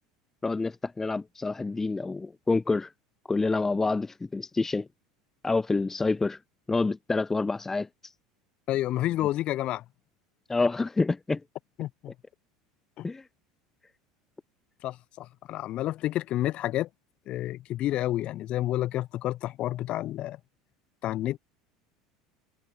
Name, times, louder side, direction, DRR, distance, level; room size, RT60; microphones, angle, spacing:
voice 1, 0.4-2.9 3.3-4.9 5.4-6.4 6.7-8.1 10.5-11.4 13.0-13.2, left 3 dB, 15° left, 1.2 m, -27 dB
voice 2, 8.7-9.8 11.8-12.1 13.0-13.1 14.8-16.9 17.3-20.4 21.0-21.4, left 14 dB, 50° left, 2.6 m, -30 dB
hypercardioid pair, 75°, 2 cm